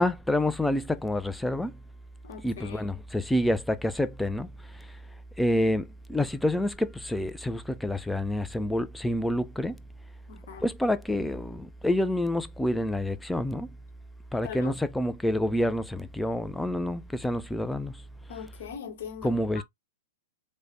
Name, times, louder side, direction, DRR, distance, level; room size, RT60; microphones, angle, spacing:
voice 1, 0.0-1.8 2.4-4.5 5.4-9.8 10.6-13.7 14.3-18.0 19.2-19.6, left 1 dB, 5° left, 0.3 m, -28 dB
voice 2, 2.2-2.9 10.3-10.7 14.4-14.8 18.3-19.6, left 7 dB, 60° left, 1.0 m, -41 dB
3.1 x 2.1 x 2.5 m
hypercardioid pair, 110°, 0 cm